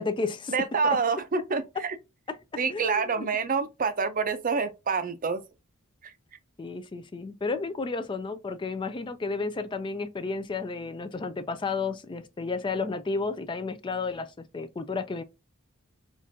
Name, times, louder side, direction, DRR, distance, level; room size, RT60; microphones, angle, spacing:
voice 1, 0.0-0.5 0.8-1.0 2.3-2.4 2.7-3.3 6.6-15.2, left 4 dB, 20° left, 0.4 m, -32 dB
voice 2, 0.5-2.0 2.6-5.4 6.0-6.1, right 5 dB, 40° right, 0.5 m, -27 dB
5.0 x 2.4 x 2.6 m
head